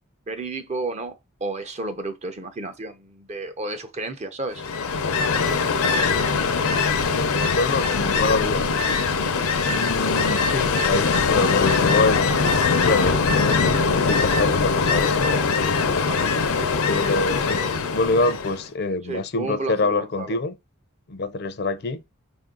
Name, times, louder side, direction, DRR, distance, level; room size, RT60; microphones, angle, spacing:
voice 1, 0.3-4.6 16.1-16.2 19.0-20.4, right 2 dB, 30° right, 0.6 m, -32 dB
Ocean, 4.5-18.6, left 4 dB, 85° left, 0.7 m, -22 dB
voice 2, 7.2-8.7 9.6-12.3 12.8-15.4 16.9-20.5 21.1-22.0, left 3 dB, 50° left, 0.5 m, -25 dB
5.2 x 2.6 x 3.7 m
head